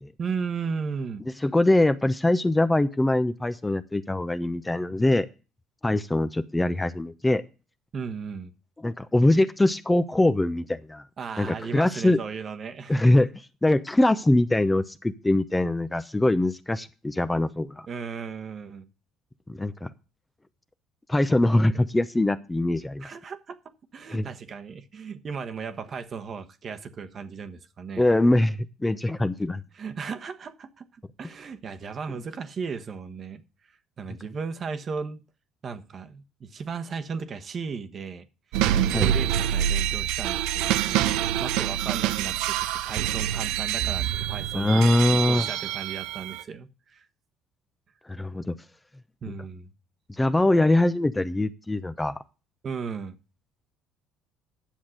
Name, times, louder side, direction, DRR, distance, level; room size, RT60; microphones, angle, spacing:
voice 1, 0.2-1.2 7.9-8.5 11.2-13.1 17.9-18.9 23.0-23.6 23.9-28.0 29.7-33.4 33.7-35.2 35.6-38.3 38.7-44.8 45.1-47.1 49.2-49.7 52.6-53.2, right 5 dB, 40° right, 8 dB, 1.2 m, -36 dB
voice 2, 1.4-5.3 5.8-7.4 8.8-11.0 11.4-12.2 12.9-13.3 13.6-17.9 19.5-19.9 21.1-23.1 24.1-24.2 28.0-29.6 38.9-39.1 44.5-45.5 48.1-48.6 50.2-52.2, left 1 dB, 10° left, 11 dB, 0.8 m, -23 dB
sound 1, 38.5-46.4, right 11 dB, 80° right, 0.7 m, -26 dB
10.5 x 7.2 x 6.4 m, 0.33 s
supercardioid pair, 85°, 0 cm